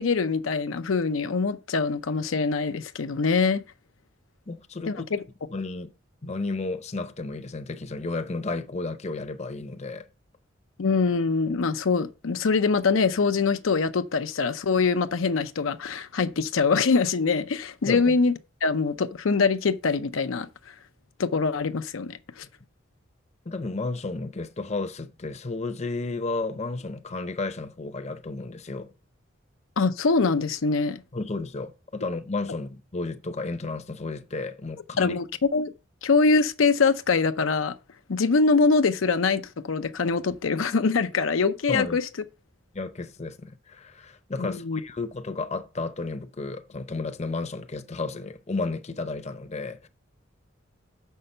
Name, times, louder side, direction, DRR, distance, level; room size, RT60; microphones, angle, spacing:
voice 1, 0.0-3.6 4.8-5.2 10.8-18.3 18.6-20.7 21.2-22.4 29.8-31.0 35.0-35.7 36.0-37.7 38.1-42.0 44.4-44.8, left 4 dB, 80° left, 0.6 m, -24 dB
voice 2, 4.5-5.1 5.5-5.9 6.2-10.1 17.9-18.2 23.5-28.9 31.1-35.2 41.7-42.0 42.7-49.9, left 3 dB, 35° left, 0.7 m, -32 dB
6.6 x 5.6 x 6.6 m
head